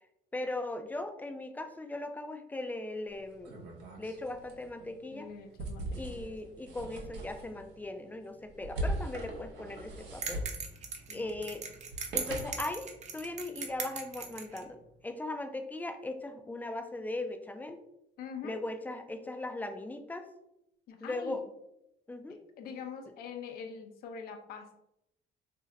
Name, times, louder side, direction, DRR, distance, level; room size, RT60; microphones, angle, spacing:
voice 1, 0.3-3.6 4.0-5.3 6.0-10.4 11.1-11.6 12.1-12.9 13.1-14.8 15.0-17.8 18.4-20.3 21.0-21.4 22.1-22.4, left 2 dB, 10° left, 6 dB, 0.3 m, -38 dB
sound 1, 3.1-12.7, right 1 dB, 90° right, 0.8 m, -41 dB
voice 2, 5.1-6.3 11.1-11.3 18.2-18.6 20.9-21.4 22.3-24.8, left 6 dB, 65° left, 4 dB, 0.5 m, -44 dB
sound 2, 10.2-14.6, right 5 dB, 45° right, 0.6 m, -39 dB
2.6 x 2.1 x 3.7 m, 0.81 s
cardioid pair, 110°, 17 cm